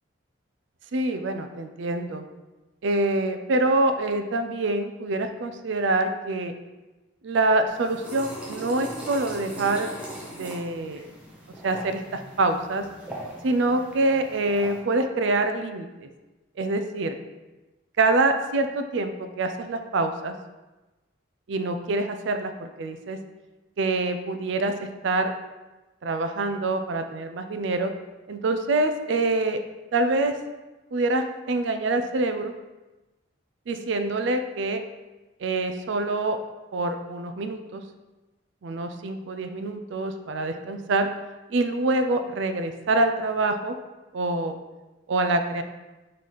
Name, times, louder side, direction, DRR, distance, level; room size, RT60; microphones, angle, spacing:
voice 1, 0.9-2.3 2.8-6.5 7.2-9.9 10.3-11.0 11.6-12.9 13.4-16.1 16.6-17.2 18.0-20.3 21.5-23.2 23.8-25.3 26.0-27.9 28.3-29.6 29.9-30.3 30.9-32.5 33.7-34.8 35.4-36.4 36.7-37.8 38.6-41.1 41.5-43.8 44.1-44.6 45.1-45.6, right 2 dB, 65° right, 7 dB, 0.4 m, -25 dB
sound 1, 7.7-14.8, right 1 dB, 5° right, 0.6 m, -40 dB
3.9 x 3.2 x 4.2 m, 1.1 s
head